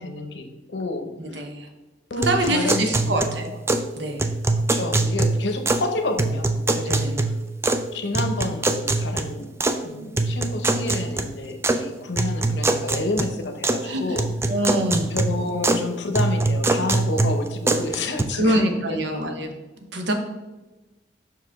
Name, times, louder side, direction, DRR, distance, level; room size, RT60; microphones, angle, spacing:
voice 1, 0.0-1.4 2.1-3.4 4.6-7.1 7.9-9.5 9.8-14.3 15.1-19.3, left 2 dB, 85° left, 6 dB, 0.8 m, -30 dB
voice 2, 1.2-1.7 2.2-3.6 3.9-4.3 6.8-7.2 13.8-14.2 14.5-15.1 18.3-19.5 19.9-20.1, right 1 dB, 85° right, 4 dB, 1.0 m, -24 dB
sound 1, 2.2-3.9 4.2-5.9 6.2-7.9 8.1-9.8 10.2-11.8 12.2-13.8 14.2-15.8 16.1-18.2, right 2 dB, 15° right, 0.4 m, -23 dB
5.8 x 4.9 x 3.5 m, 1.1 s
head